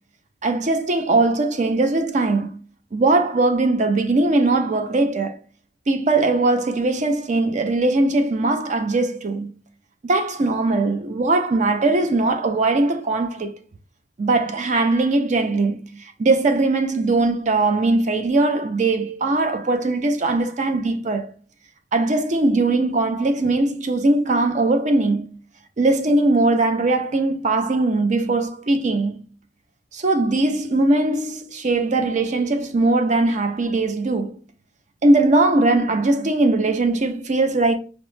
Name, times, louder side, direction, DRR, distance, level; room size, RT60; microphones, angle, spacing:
voice 1, 0.4-2.6 2.9-5.4 5.9-9.5 10.0-13.6 14.2-21.3 21.9-25.4 25.8-29.2 29.9-34.4 35.0-37.8, right 2 dB, 40° right, 0.4 m, -20 dB
5.2 x 2.0 x 3.1 m
head